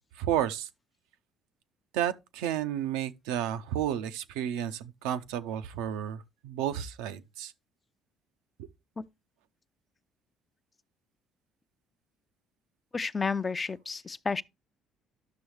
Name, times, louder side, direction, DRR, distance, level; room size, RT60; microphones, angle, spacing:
voice 1, 0.2-0.7 1.9-7.5, right 11 dB, 75° right, 0.5 m, -32 dB
voice 2, 12.9-14.4, left 4 dB, 30° left, 0.5 m, -31 dB
11.5 x 6.1 x 3.2 m
hypercardioid pair, 60°, 0 cm